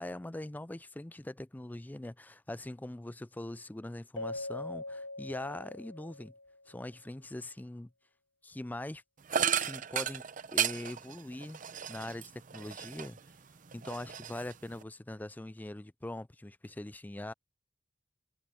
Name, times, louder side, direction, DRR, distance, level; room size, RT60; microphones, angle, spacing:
voice 1, 0.0-6.3 6.7-7.9 8.4-9.0 9.5-10.2 10.5-11.6 11.9-13.2 13.7-17.3, left 1 dB, 10° left, 0.4 m, -42 dB
Keyboard (musical), 4.2-6.6, left 2 dB, 75° left, 0.8 m, -41 dB
sound 1, 9.3-13.3 13.7-14.8, right 8 dB, 45° right, 0.7 m, -34 dB
head